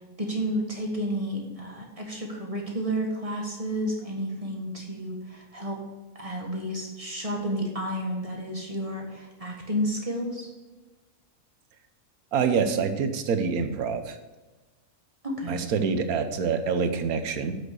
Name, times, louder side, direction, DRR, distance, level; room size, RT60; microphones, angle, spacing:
voice 1, 0.2-5.8 6.1-10.5 15.2-15.6, equal, 25° right, -1 dB, 1.5 m, -31 dB
voice 2, 12.3-14.2 15.5-17.5, right 5 dB, 75° right, 8 dB, 1.3 m, -26 dB
7.7 x 6.2 x 6.3 m, 1.2 s
omnidirectional pair, 1.5 m